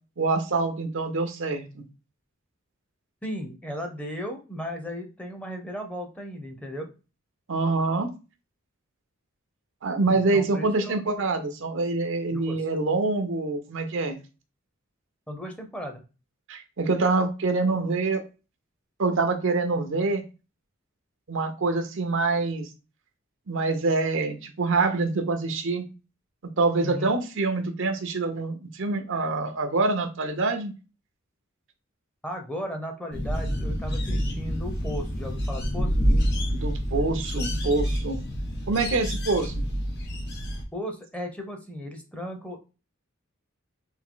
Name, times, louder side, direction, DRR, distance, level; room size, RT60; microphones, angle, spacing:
voice 1, 0.2-1.8 7.5-8.1 9.8-14.2 16.5-18.2 19.0-20.2 21.3-22.7 23.5-25.8 26.6-30.7 36.5-38.2 38.7-39.6, right 3 dB, 65° right, 7 dB, 0.7 m, -25 dB
voice 2, 3.2-6.9 10.1-11.0 12.3-12.7 15.3-16.0 26.8-27.2 32.2-36.0 40.7-42.6, equal, 5° left, 3 dB, 0.6 m, -36 dB
sound 1, 33.1-40.6, equal, 55° left, 1.0 m, -27 dB
3.6 x 2.6 x 3.7 m, 0.31 s
head